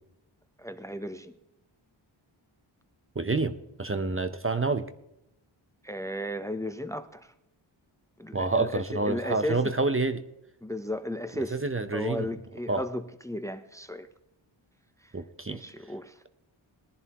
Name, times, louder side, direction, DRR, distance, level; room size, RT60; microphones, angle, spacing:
voice 1, 0.6-1.3 5.8-7.3 8.2-9.7 10.6-11.6 11.9-14.1 15.5-16.2, left 1 dB, 5° left, 0.8 m, -35 dB
voice 2, 3.2-4.8 8.3-10.2 11.5-12.3 12.7-12.9 15.1-15.6, right 3 dB, 25° right, 0.8 m, -28 dB
19.5 x 11.0 x 3.0 m
cardioid pair, 55°, 50 cm